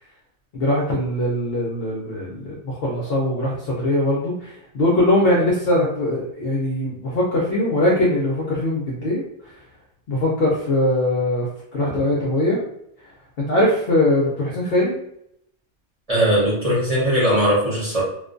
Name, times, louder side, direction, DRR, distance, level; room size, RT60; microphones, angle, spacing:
voice 1, 0.5-9.5 10.1-11.5 11.7-12.6 13.4-15.0, left 1 dB, 65° left, -4 dB, 0.6 m, -21 dB
voice 2, 16.1-18.0, equal, 30° right, -8 dB, 0.7 m, -19 dB
2.4 x 2.2 x 2.5 m, 0.75 s
omnidirectional pair, 1.5 m